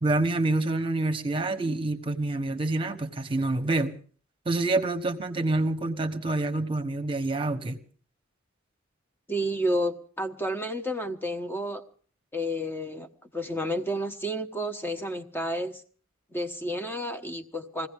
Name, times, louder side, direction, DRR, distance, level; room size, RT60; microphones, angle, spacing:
voice 1, 0.0-4.0 4.4-7.8, right 2 dB, 25° right, 1.2 m, -27 dB
voice 2, 9.3-11.8 12.3-15.8 16.3-17.9, equal, 10° left, 1.1 m, -31 dB
21.5 x 16.5 x 3.6 m
head